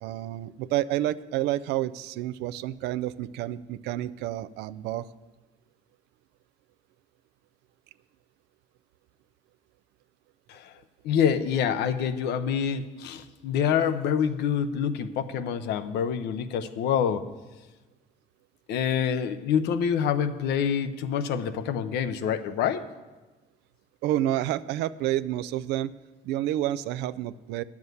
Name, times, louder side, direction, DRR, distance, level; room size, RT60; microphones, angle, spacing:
voice 1, 0.0-5.1 24.0-25.9 26.2-27.6, right 13 dB, 90° right, 14 dB, 0.4 m, -29 dB
voice 2, 11.0-17.3 18.7-22.8, left 8 dB, 80° left, 11 dB, 0.7 m, -26 dB
9.6 x 7.2 x 7.8 m, 1.2 s
cardioid pair, 110°, 17 cm